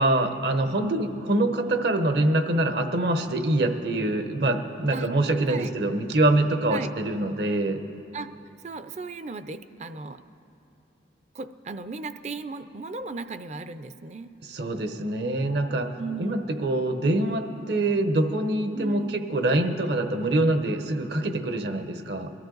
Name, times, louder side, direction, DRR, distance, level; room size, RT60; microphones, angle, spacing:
voice 1, 0.0-7.8 14.4-15.9 16.2-22.3, right 1 dB, 70° right, 7 dB, 1.0 m, -25 dB
voice 2, 0.8-1.2 4.9-5.1 5.5-5.7 6.7-6.9 8.1-8.3 8.6-10.2 11.3-14.3 15.9-16.5 18.7-19.1, right 3 dB, 40° right, 12 dB, 0.4 m, -36 dB
22.5 x 13.0 x 3.9 m, 2.6 s
head